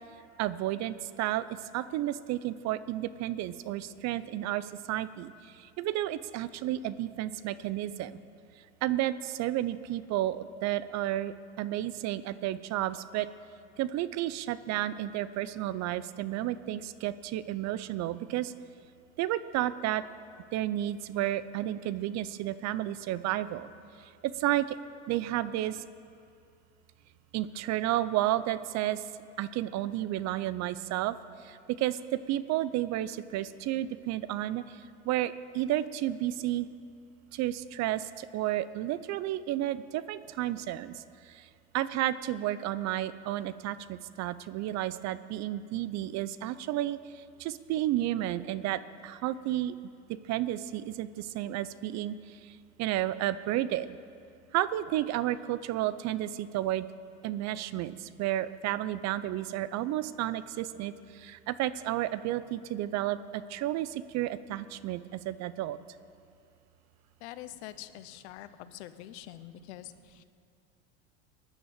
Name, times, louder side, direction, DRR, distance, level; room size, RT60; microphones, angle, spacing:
voice 1, 0.4-1.5 1.7-8.2 8.8-13.3 13.8-18.5 19.2-20.0 20.5-23.7 24.2-24.8 25.1-25.9 27.3-29.0 29.4-31.1 31.4-34.6 35.0-36.7 37.3-41.5 41.7-49.8 50.1-52.5 52.8-53.9 54.5-56.8 57.2-65.8, right 14 dB, 50° right, 15 dB, 0.7 m, -32 dB
voice 2, 67.2-70.2, left 13 dB, 75° left, 12 dB, 1.0 m, -45 dB
19.0 x 10.0 x 7.4 m, 2.4 s
supercardioid pair, 95°, 34 cm